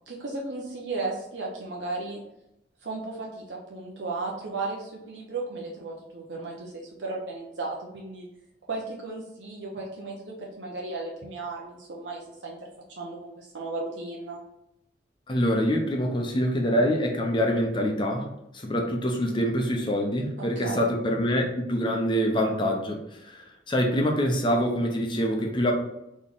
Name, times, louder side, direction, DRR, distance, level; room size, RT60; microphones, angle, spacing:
voice 1, 0.1-2.2 2.8-8.3 8.7-12.6 12.9-14.4 20.6-20.8, right 3 dB, 90° right, -2 dB, 0.8 m, -35 dB
voice 2, 15.3-18.3 18.5-25.7, equal, 25° left, 1 dB, 0.7 m, -25 dB
4.1 x 3.1 x 3.6 m, 0.85 s
head